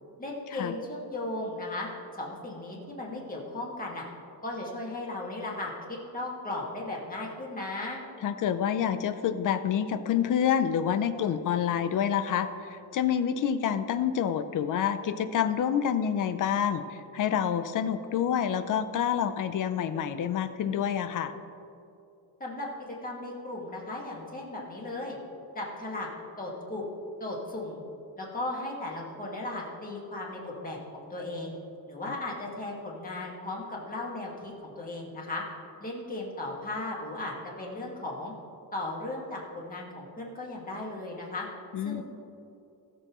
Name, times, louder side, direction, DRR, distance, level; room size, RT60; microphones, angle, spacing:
voice 1, 0.2-1.9 2.1-4.1 4.4-8.0 22.4-22.7 23.0-25.2 25.5-26.1 26.4-26.8 27.2-27.8 28.2-31.5 31.9-35.4 35.8-38.3 38.7-41.5 41.8-42.0, left 2 dB, 20° left, -3 dB, 1.8 m, -36 dB
voice 2, 8.2-21.3 32.1-32.2 41.7-42.0, left 8 dB, 45° left, 11 dB, 0.6 m, -28 dB
19.5 x 6.8 x 3.1 m, 2.7 s
cardioid pair, 165°, 45 cm